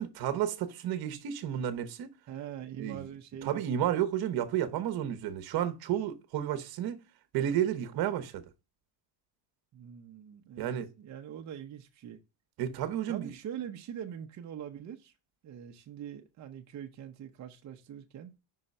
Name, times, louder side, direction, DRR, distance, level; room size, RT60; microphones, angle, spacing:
voice 1, 0.0-2.1 2.8-3.0 3.4-7.0 7.3-8.4 10.6-10.9 12.6-13.3, right 10 dB, 55° right, 1.1 m, -31 dB
voice 2, 2.3-3.6 9.7-12.2 13.1-15.1 15.4-18.3, right 9 dB, 40° right, 0.8 m, -43 dB
5.7 x 3.7 x 5.4 m
cardioid pair, 135°, 45 cm